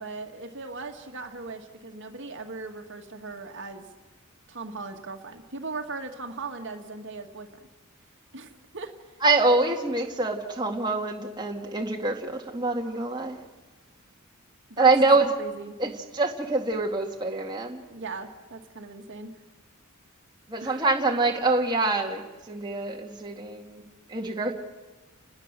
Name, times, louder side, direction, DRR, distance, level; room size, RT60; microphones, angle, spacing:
voice 1, 0.0-3.9 4.5-7.5 8.3-8.9 14.7-14.9 15.4-15.7 17.9-19.3 20.6-20.8, right 3 dB, 55° right, 4 dB, 2.0 m, -38 dB
voice 2, 9.2-13.4 14.8-15.3 15.8-17.8 20.5-23.8 24.1-24.5, right 3 dB, 20° right, 1 dB, 2.1 m, -25 dB
30.0 x 20.5 x 7.6 m, 1.2 s
head